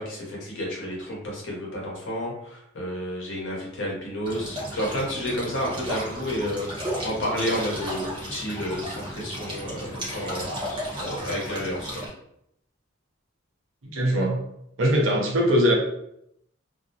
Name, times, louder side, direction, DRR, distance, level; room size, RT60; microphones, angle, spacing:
voice 1, 0.0-6.7 7.0-11.9, equal, 65° left, -2 dB, 0.8 m, -31 dB
sound 1, 4.2-12.1, equal, 25° right, 0.8 m, -34 dB
voice 2, 13.8-14.4 14.8-15.7, equal, 65° right, -1 dB, 0.7 m, -21 dB
2.5 x 2.0 x 2.7 m, 0.77 s
head